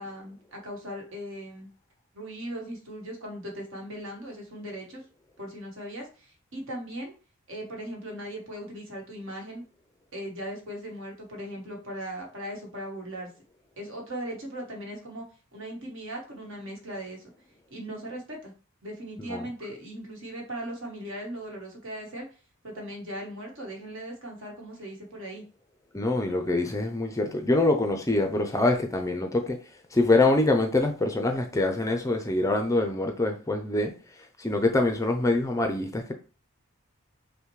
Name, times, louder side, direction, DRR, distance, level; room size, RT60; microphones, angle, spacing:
voice 1, 0.0-1.7 2.1-5.0 5.4-7.1 7.5-9.6 10.1-13.3 13.8-15.2 15.5-17.3 17.7-18.5 18.8-22.3 22.6-25.4, right 1 dB, 60° right, 1.3 m, -38 dB
voice 2, 25.9-29.6 29.9-33.9 34.4-36.1, left 2 dB, 15° left, 0.4 m, -24 dB
5.6 x 2.1 x 3.1 m
head